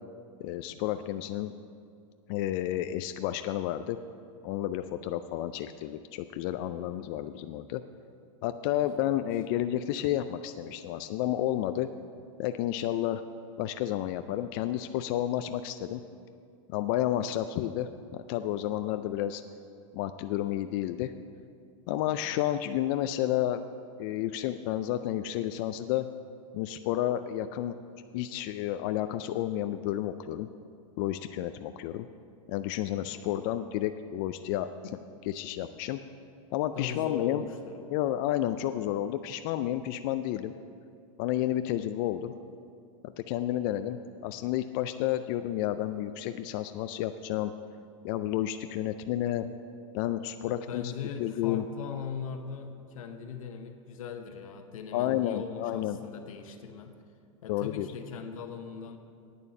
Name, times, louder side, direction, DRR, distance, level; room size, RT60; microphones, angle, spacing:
voice 1, 0.4-1.5 2.3-4.0 4.4-7.8 8.4-11.9 12.4-13.2 13.6-16.0 16.7-19.4 19.9-21.1 21.9-23.6 24.0-26.1 26.5-27.8 28.1-30.5 31.0-32.1 32.5-34.7 35.3-36.0 36.5-37.4 37.9-40.5 41.2-42.3 43.0-47.5 48.0-49.5 49.9-50.9 51.2-51.6 54.9-56.0 57.5-57.9, left 12 dB, 40° left, 9 dB, 0.4 m, -31 dB
voice 2, 33.1-33.4 34.8-34.9 36.7-38.0 50.5-56.9 57.4-59.0, left 6 dB, 85° left, 6 dB, 1.0 m, -40 dB
9.1 x 6.7 x 8.6 m, 2.4 s
supercardioid pair, 155°, 17 cm